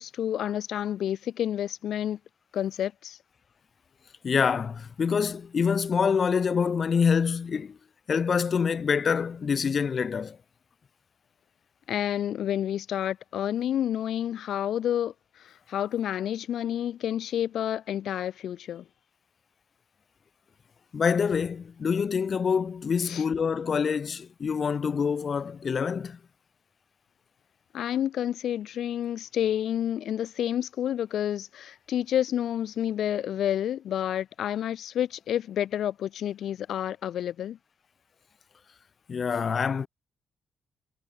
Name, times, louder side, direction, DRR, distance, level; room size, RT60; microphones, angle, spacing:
voice 1, 0.0-2.2 2.5-3.2 11.9-15.1 15.4-18.8 23.0-23.2 27.7-37.6, left 10 dB, 70° left, 2.4 m, -29 dB
voice 2, 4.2-7.8 8.1-10.4 20.9-26.2 39.1-39.9, left 6 dB, 50° left, 5.3 m, -26 dB
supercardioid pair, 55°, 0 cm